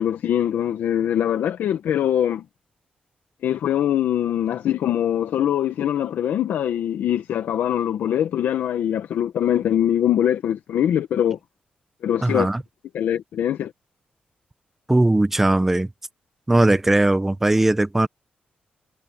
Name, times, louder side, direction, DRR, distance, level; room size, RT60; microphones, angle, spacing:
voice 1, 0.0-2.4 3.4-11.4 12.0-12.5 12.9-13.7, left 10 dB, 90° left, 1.2 m, -22 dB
voice 2, 12.2-12.6 14.9-15.9 16.5-18.1, right 2 dB, 10° right, 0.9 m, -19 dB
wide cardioid pair, 165°, 3 cm